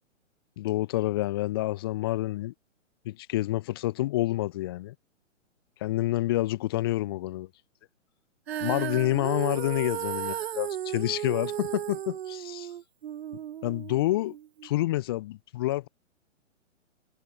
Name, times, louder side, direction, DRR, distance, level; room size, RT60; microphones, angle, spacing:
voice 1, 0.6-2.5 3.0-4.9 5.8-7.5 8.6-12.7 13.6-14.4 14.6-15.9, left 16 dB, 20° left, 0.8 m, -28 dB
Female singing, 8.5-14.7, right 10 dB, 55° right, 0.6 m, -35 dB
hypercardioid pair, 165°, 38 cm